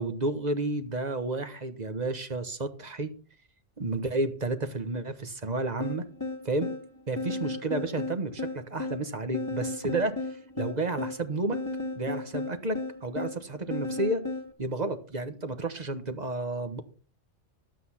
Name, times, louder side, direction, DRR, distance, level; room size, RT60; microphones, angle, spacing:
voice 1, 0.0-3.1 3.8-6.0 6.4-6.7 7.1-10.2 10.6-11.6 11.9-14.2 14.6-16.8, right 2 dB, 40° right, 10 dB, 1.3 m, -31 dB
sound 1, 5.8-14.5, left 2 dB, 15° left, 1.7 m, -35 dB
11.5 x 8.3 x 5.8 m, 0.40 s
omnidirectional pair, 1.2 m